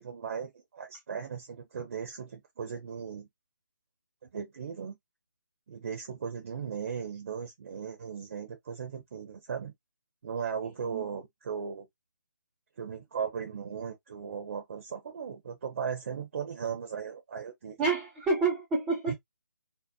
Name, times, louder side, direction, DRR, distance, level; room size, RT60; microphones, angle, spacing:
voice 1, 0.0-3.3 4.2-5.0 5.7-9.7 10.2-11.9 12.8-17.8 19.1-19.2, right 7 dB, 40° right, 0.6 m, -37 dB
voice 2, 17.8-19.1, right 3 dB, 5° right, 0.4 m, -28 dB
2.7 x 2.0 x 2.3 m
figure-of-eight pair, 150°, 11 cm